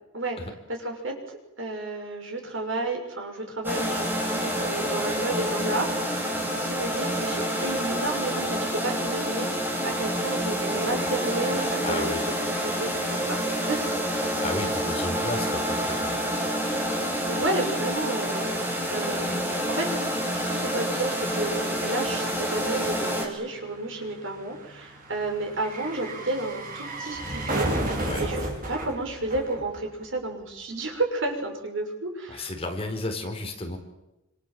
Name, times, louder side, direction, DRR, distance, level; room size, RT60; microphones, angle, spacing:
voice 1, 0.7-6.2 6.6-12.1 12.6-14.4 17.0-20.0 20.3-32.5, right 2 dB, 65° right, 3 dB, 6.3 m, -32 dB
sound 1, 3.6-23.2, equal, 10° right, 5.7 m, -28 dB
voice 2, 11.8-12.3 14.2-16.2 28.0-28.2 32.3-33.8, left 2 dB, 30° left, 3 dB, 4.4 m, -33 dB
sound 2, 19.9-30.2 30.5-30.6, right 1 dB, 45° right, 5.9 m, -34 dB
28.5 x 26.5 x 7.7 m, 0.94 s
head